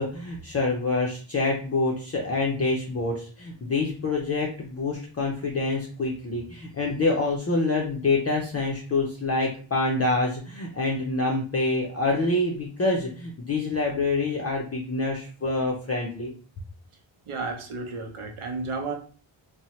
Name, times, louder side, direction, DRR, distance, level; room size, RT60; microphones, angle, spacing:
voice 1, 0.0-16.3, left 2 dB, 30° left, -2 dB, 0.4 m, -26 dB
voice 2, 17.3-18.9, right 3 dB, 75° right, 3 dB, 0.7 m, -32 dB
2.8 x 2.0 x 2.9 m, 0.40 s
wide cardioid pair, 125°, 50 cm